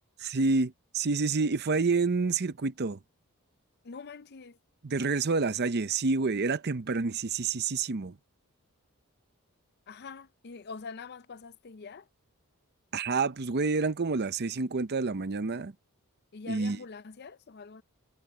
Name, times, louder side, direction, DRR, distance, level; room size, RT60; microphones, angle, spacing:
voice 1, 0.2-3.0 4.8-8.1 12.9-15.7 16.5-16.8, right 4 dB, 45° right, 0.7 m, -28 dB
voice 2, 3.8-4.6 9.9-12.1 16.3-17.8, left 4 dB, 45° left, 0.5 m, -44 dB
head